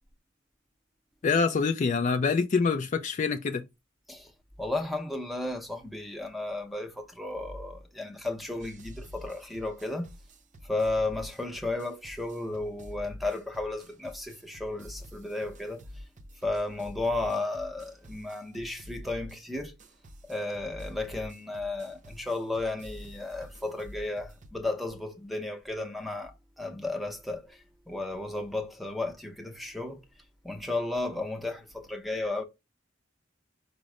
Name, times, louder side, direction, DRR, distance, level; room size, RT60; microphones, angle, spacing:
voice 1, 1.2-3.7, left 5 dB, 40° left, 0.3 m, -25 dB
voice 2, 4.6-10.1 10.6-15.8 16.4-19.7 20.2-27.6 27.9-30.0 30.4-32.4, left 2 dB, ahead, 0.7 m, -33 dB
sound 1, 8.6-24.5, equal, 40° right, 0.5 m, -48 dB
5.2 x 2.0 x 4.7 m
head